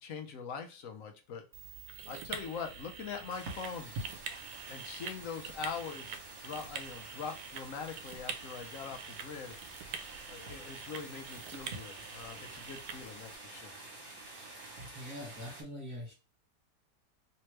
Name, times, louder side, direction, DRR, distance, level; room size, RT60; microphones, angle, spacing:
voice 1, 0.0-1.4 2.1-3.9 4.7-9.5 10.2-13.7, left 6 dB, 65° left, 5 dB, 0.9 m, -43 dB
sound 1, 1.5-13.4, right 7 dB, 85° right, 1.2 m, -46 dB
sound 2, 3.3-15.6, right 2 dB, 45° right, 1.7 m, -48 dB
voice 2, 14.8-16.1, left 1 dB, 25° right, -5 dB, 1.5 m, -43 dB
3.3 x 3.0 x 3.2 m, 0.31 s
omnidirectional pair, 1.8 m